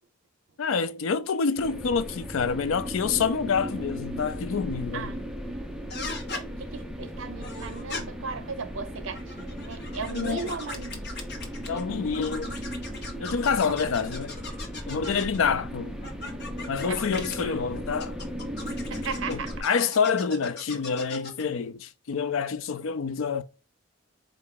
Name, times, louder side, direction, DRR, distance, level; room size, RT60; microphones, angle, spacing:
voice 1, 0.6-5.1 10.1-10.5 11.7-12.5 13.2-14.4 14.9-16.0 16.7-18.2 19.3-23.4, left 5 dB, 75° left, 0.4 m, -27 dB
sound 1, 1.6-19.6, equal, 5° right, 0.5 m, -37 dB
voice 2, 4.9-5.3 6.6-11.1 11.7-12.1 13.7-14.1 15.1-15.3 16.9-17.6 18.9-19.5, right 5 dB, 65° right, 0.6 m, -37 dB
sound 2, 5.9-6.4 7.4-8.0 9.0-11.8 12.1-15.4 16.0-17.4 18.0-21.5, left 3 dB, 55° left, 1.1 m, -39 dB
4.4 x 2.6 x 3.7 m
head